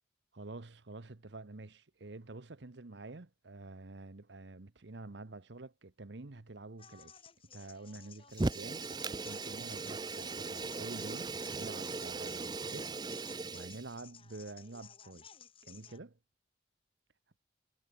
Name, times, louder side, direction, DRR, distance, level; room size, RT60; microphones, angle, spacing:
voice 1, 0.3-7.1 7.5-12.9 13.5-15.3 15.6-16.2, right 2 dB, 75° right, 1.0 m, -48 dB
sound 1, 6.8-16.0, left 7 dB, 30° left, 5.0 m, -57 dB
Fire, 8.3-13.9, right 3 dB, 20° right, 0.5 m, -38 dB
head